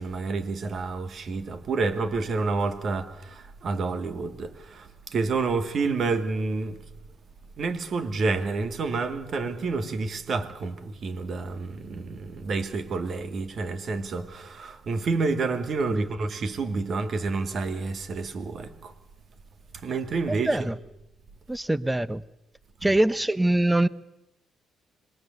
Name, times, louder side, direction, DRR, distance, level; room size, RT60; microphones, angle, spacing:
voice 1, 0.0-6.8 7.6-18.9 19.7-20.7 22.8-23.0, right 4 dB, 55° right, 2.6 m, -29 dB
voice 2, 20.3-20.7 21.5-22.2 22.8-23.9, right 1 dB, 10° right, 0.9 m, -23 dB
26.5 x 22.5 x 8.1 m
cardioid pair, 90°, 0 cm